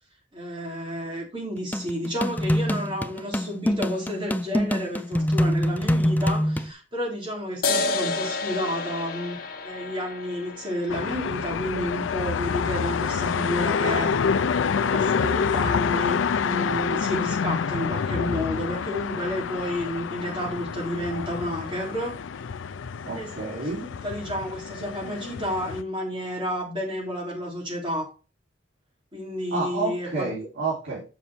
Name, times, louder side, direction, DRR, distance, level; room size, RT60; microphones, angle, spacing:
voice 1, 0.3-9.4 9.6-14.4 14.7-22.2 23.1-23.3 23.8-28.1 29.1-30.3, equal, 25° right, -2 dB, 3.6 m, -31 dB
sound 1, 1.7-6.7, equal, 10° left, 0.5 m, -24 dB
sound 2, 7.6-14.6, left 3 dB, 50° left, 1.3 m, -32 dB
sound 3, 10.9-25.8, left 6 dB, 90° left, 0.5 m, -27 dB
voice 2, 23.0-23.8 29.5-31.0, right 3 dB, 80° right, -6 dB, 3.3 m, -29 dB
7.1 x 6.2 x 4.3 m, 0.34 s
head